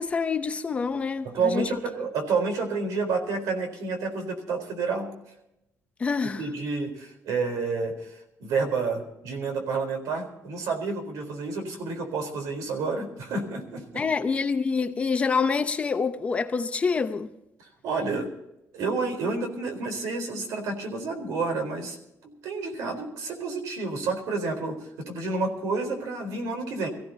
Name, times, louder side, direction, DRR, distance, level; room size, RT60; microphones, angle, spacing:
voice 1, 0.0-1.7 6.0-6.4 13.9-17.3, left 5 dB, 20° left, 0.7 m, -26 dB
voice 2, 1.2-5.1 6.4-8.1 8.4-14.0 17.6-18.3 18.7-22.0 22.2-26.9, right 4 dB, 80° right, 4.0 m, -29 dB
24.5 x 15.5 x 2.8 m
cardioid pair, 180°, 6 cm